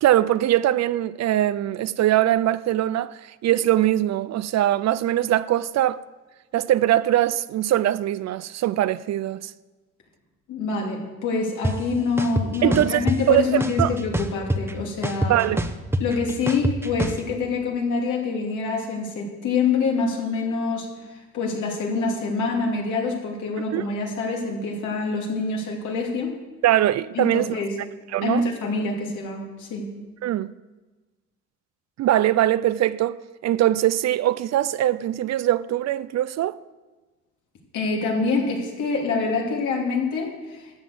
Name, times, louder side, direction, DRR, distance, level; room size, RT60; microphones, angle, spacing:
voice 1, 0.0-6.0 6.5-9.5 12.6-14.0 15.3-15.6 23.7-23.8 26.6-27.5 28.1-28.4 30.2-30.5 32.0-36.6, right 13 dB, 60° right, 0.5 m, -22 dB
voice 2, 10.5-15.4 16.0-26.3 27.1-27.7 28.2-29.9 37.7-40.8, left 4 dB, 80° left, 2.7 m, -26 dB
sound 1, 11.6-11.7 12.2-13.2 13.6-14.7 15.0-17.2, right 1 dB, 10° right, 0.9 m, -24 dB
13.0 x 7.1 x 7.8 m
cardioid pair, 90°, 30 cm